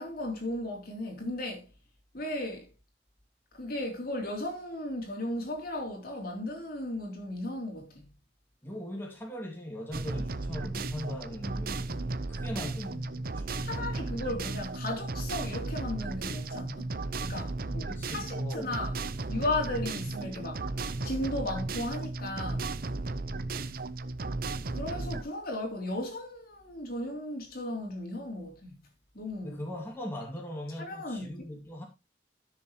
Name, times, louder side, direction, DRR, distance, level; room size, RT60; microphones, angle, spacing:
voice 1, 0.0-1.7 2.1-2.7 3.5-8.1 13.6-16.9 17.2-18.9 19.3-20.6 21.0-22.7 24.7-28.8 29.2-29.6 30.8-31.5, left 1 dB, 55° left, 3.3 m, -35 dB
voice 2, 8.6-13.9 17.9-18.8 20.3-20.5 29.4-31.9, left 1 dB, 15° left, 2.2 m, -40 dB
sound 1, 9.9-25.2, right 3 dB, 55° right, 0.7 m, -35 dB
14.0 x 6.6 x 3.1 m
head